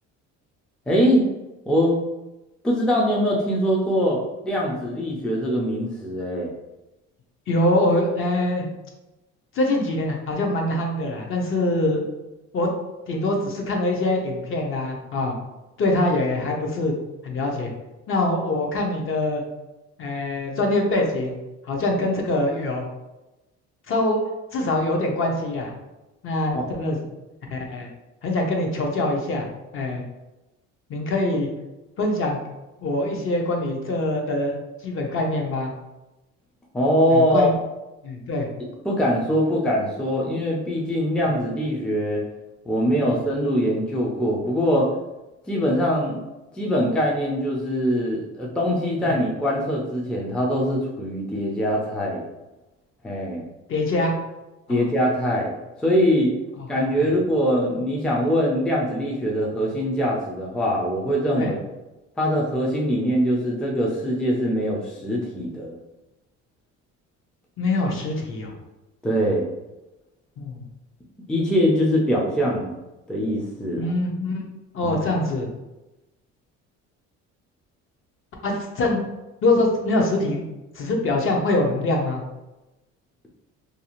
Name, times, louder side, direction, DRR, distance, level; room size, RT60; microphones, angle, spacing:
voice 1, 0.9-1.2 1.7-2.0 2.6-4.2 4.4-6.5 26.5-26.6 36.7-37.5 38.8-42.2 42.7-44.9 45.5-46.2 46.5-52.2 53.0-53.4 54.7-56.3 56.7-61.6 62.2-65.8 69.0-69.5 71.3-72.7 73.1-73.9 74.8-75.0, equal, 5° left, -3 dB, 0.4 m, -22 dB
voice 2, 7.5-8.7 9.5-12.0 12.5-12.7 13.1-15.4 15.8-16.9 17.2-17.7 18.1-19.4 20.0-21.4 21.7-22.9 23.9-24.2 24.5-25.7 26.2-27.0 27.5-27.9 28.2-29.5 29.7-30.0 30.9-31.5 32.0-32.4 32.8-34.6 34.8-35.7 37.1-37.5 38.0-38.5 43.0-43.2 49.0-49.1 53.7-54.1 54.7-54.8 57.0-57.1 61.4-61.5 67.6-68.5 70.4-70.6 73.8-74.4 74.7-75.5 78.4-79.0 79.4-80.4 80.7-82.2, left 2 dB, 45° left, 1 dB, 0.6 m, -24 dB
2.6 x 2.4 x 2.9 m, 1.0 s
cardioid pair, 115°, 30 cm